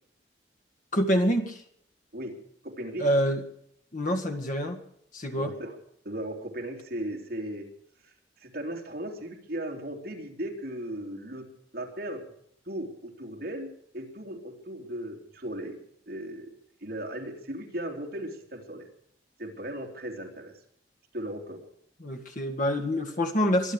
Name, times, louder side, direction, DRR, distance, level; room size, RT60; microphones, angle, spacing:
voice 1, 0.9-1.6 3.0-3.4 3.9-4.8 5.1-5.5 22.0-23.7, equal, 45° left, 6 dB, 1.9 m, -26 dB
voice 2, 2.6-3.1 5.4-5.8 6.0-7.7 8.0-8.1 8.4-11.5 11.7-12.3 12.6-15.8 16.1-16.5 16.8-18.9 19.4-20.5 21.1-21.6, right 1 dB, 55° right, 1 dB, 3.3 m, -37 dB
24.0 x 10.0 x 4.9 m, 0.68 s
head